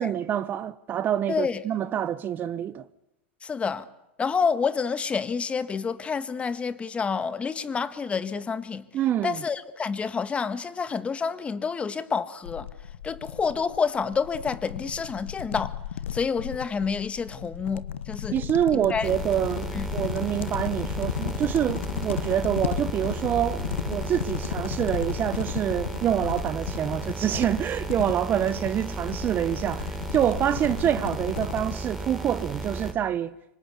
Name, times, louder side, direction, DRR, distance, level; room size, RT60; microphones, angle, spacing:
voice 1, 0.0-2.8 8.9-9.4 18.3-33.3, right 10 dB, 30° right, 1.0 m, -26 dB
voice 2, 1.3-1.6 3.4-3.9 4.2-8.8 9.2-12.7 13.0-15.8 16.1-18.4 18.7-19.1 19.7-19.8, left 5 dB, 20° left, 1.7 m, -28 dB
sound 1, 12.4-31.8, left 10 dB, 80° left, 1.2 m, -35 dB
sound 2, 19.0-32.9, right 2 dB, 5° right, 5.1 m, -34 dB
26.0 x 25.5 x 8.5 m
hypercardioid pair, 115°, 6 cm